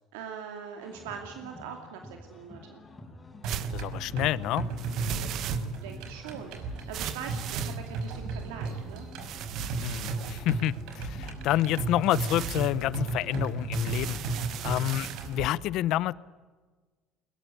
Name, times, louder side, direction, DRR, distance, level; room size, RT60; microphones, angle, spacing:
voice 1, 0.1-2.8 5.1-6.6 6.9-9.1, right 7 dB, 90° right, 4 dB, 2.6 m, -42 dB
sound 1, 0.8-15.5, left 2 dB, 20° left, 5.8 m, -49 dB
sound 2, 3.4-15.4, right 4 dB, 75° right, 5.8 m, -35 dB
sound 3, 3.5-3.8 4.8-5.9 6.9-8.2 9.2-11.2 12.0-12.7 13.7-15.3, right 10 dB, 60° right, 1.5 m, -38 dB
voice 2, 3.7-4.7 9.8-16.1, left 14 dB, 65° left, 19 dB, 0.8 m, -29 dB
22.0 x 21.5 x 9.9 m, 1.4 s
supercardioid pair, 105°, 0 cm